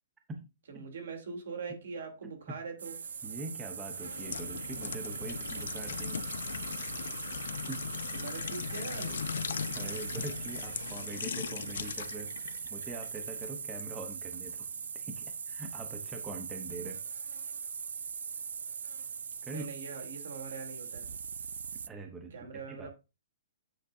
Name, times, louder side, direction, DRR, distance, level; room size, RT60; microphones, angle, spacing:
voice 1, 0.7-3.0 8.1-9.2 19.5-21.1 22.3-22.9, right 5 dB, 65° right, 3.2 m, -42 dB
sound 1, 2.8-21.9, right 6 dB, 90° right, 0.5 m, -41 dB
voice 2, 3.2-6.2 7.7-7.8 9.7-14.7 14.9-17.0 19.4-19.7 21.9-22.4 22.7-22.9, right 3 dB, 10° right, 0.8 m, -43 dB
sound 2, 3.9-13.9 14.3-14.5, left 7 dB, 65° left, 0.5 m, -39 dB
9.3 x 7.4 x 2.7 m
hypercardioid pair, 175°, 0 cm